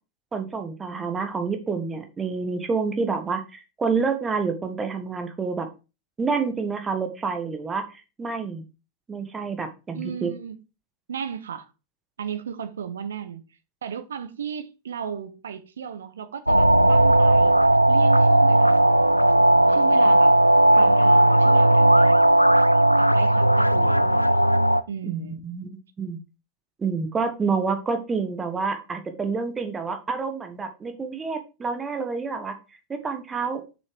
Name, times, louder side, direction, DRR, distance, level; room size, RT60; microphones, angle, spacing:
voice 1, 0.3-5.7 6.2-8.6 9.1-10.3 25.0-26.2 26.8-32.5 32.9-33.6, right 4 dB, 15° right, 1.5 m, -28 dB
voice 2, 9.9-10.6 11.1-11.7 12.2-13.4 13.8-17.6 17.9-19.1 19.7-20.3 20.7-22.2 23.0-24.5 24.9-25.4, right 7 dB, 65° right, 1.1 m, -35 dB
sound 1, 16.5-24.8, right 1 dB, 90° right, 0.3 m, -17 dB
7.1 x 6.3 x 4.7 m
figure-of-eight pair, 90°, 0 cm